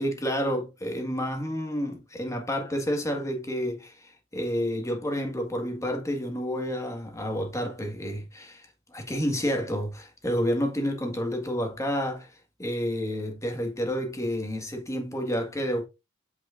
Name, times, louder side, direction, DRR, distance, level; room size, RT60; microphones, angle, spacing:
voice 1, 0.0-12.3 12.6-15.9, equal, 15° left, 1.7 m, -30 dB
8.3 x 5.9 x 2.6 m
head